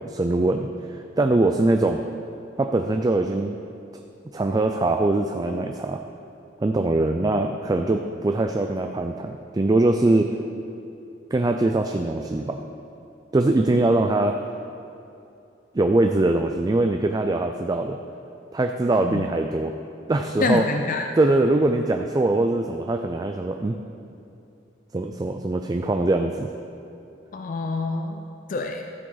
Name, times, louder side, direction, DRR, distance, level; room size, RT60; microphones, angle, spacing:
voice 1, 0.0-2.0 2.6-3.6 4.3-6.0 6.6-10.3 11.3-12.6 13.3-14.4 15.7-18.0 18.5-19.7 20.1-20.6 21.2-23.8 24.9-26.5, right 2 dB, 20° right, 5 dB, 0.3 m, -22 dB
voice 2, 20.4-21.1 27.3-28.2 28.5-28.8, left 3 dB, 45° left, 4 dB, 0.4 m, -26 dB
13.5 x 7.5 x 3.9 m, 2.7 s
head